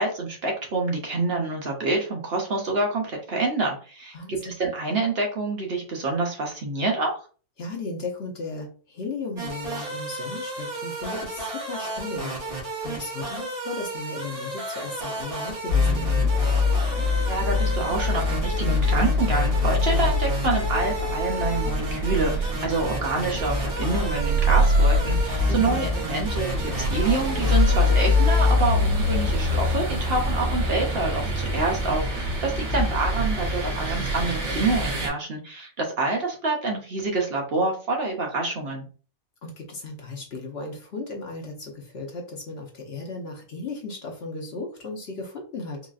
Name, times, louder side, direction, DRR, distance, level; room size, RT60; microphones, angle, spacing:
voice 1, 0.0-7.1 17.3-38.8, right 3 dB, 55° right, 0 dB, 0.9 m, -27 dB
voice 2, 4.1-4.6 7.6-16.3 25.5-25.8 39.4-45.8, left 3 dB, 55° left, 0 dB, 0.9 m, -35 dB
sound 1, 9.4-28.5, right 2 dB, 25° right, 1.3 m, -33 dB
sound 2, 15.7-35.1, left 2 dB, 85° right, 1.6 m, -24 dB
3.9 x 2.4 x 2.4 m, 0.38 s
omnidirectional pair, 1.4 m